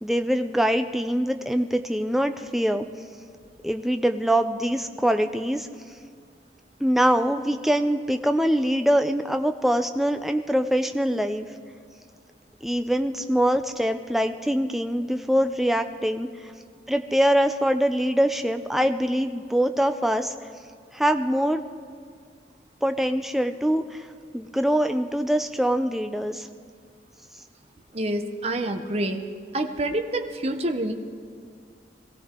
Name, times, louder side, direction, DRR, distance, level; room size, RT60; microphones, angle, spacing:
voice 1, 0.0-2.9 3.6-5.7 6.8-11.5 12.6-16.3 16.9-20.3 20.9-21.6 22.8-24.1 24.3-26.5, equal, ahead, 7 dB, 0.4 m, -23 dB
voice 2, 27.9-29.2 29.5-30.9, right 1 dB, 35° right, 5 dB, 0.8 m, -27 dB
22.5 x 16.5 x 3.7 m, 2.1 s
head